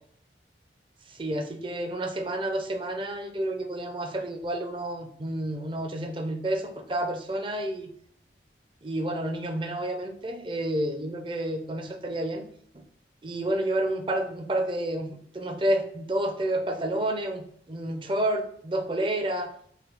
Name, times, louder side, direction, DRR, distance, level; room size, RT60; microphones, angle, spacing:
voice 1, 1.1-7.9 8.8-12.4 12.7-12.8 13.2-19.5, right 1 dB, 30° right, 5 dB, 0.6 m, -30 dB
4.8 x 2.3 x 4.7 m, 0.62 s
head